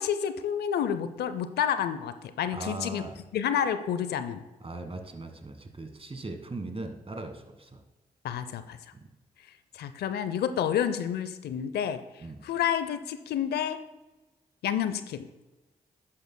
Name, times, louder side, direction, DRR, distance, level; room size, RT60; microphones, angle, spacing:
voice 1, 0.0-3.0 3.3-4.4 8.2-8.8 9.7-13.8 14.6-15.3, left 9 dB, 75° left, 12 dB, 0.5 m, -29 dB
voice 2, 2.5-3.2 4.6-7.8 12.2-12.4, right 2 dB, 35° right, 6 dB, 1.5 m, -39 dB
11.0 x 8.5 x 2.2 m, 1.1 s
hypercardioid pair, 40°, 17 cm